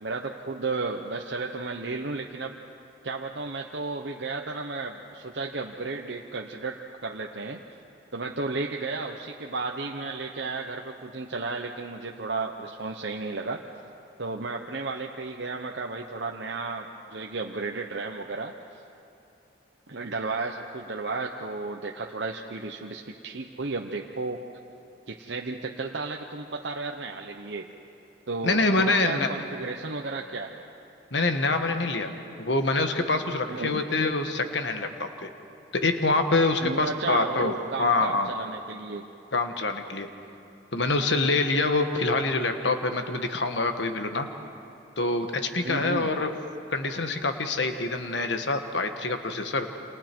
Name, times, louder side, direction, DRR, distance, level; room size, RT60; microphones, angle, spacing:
voice 1, 0.0-2.5 3.0-7.6 8.1-13.6 14.2-18.8 19.9-24.4 25.1-27.7 28.3-30.7 33.5-33.8 36.6-39.1 45.6-46.1, right 3 dB, 70° right, 1 dB, 0.9 m, -33 dB
voice 2, 28.4-29.3 31.1-32.1 32.4-35.3 35.7-38.3 39.3-40.1 40.7-44.3 45.0-46.3 46.7-49.7, left 3 dB, 75° left, 6 dB, 1.4 m, -25 dB
28.5 x 27.5 x 4.6 m, 2.8 s
head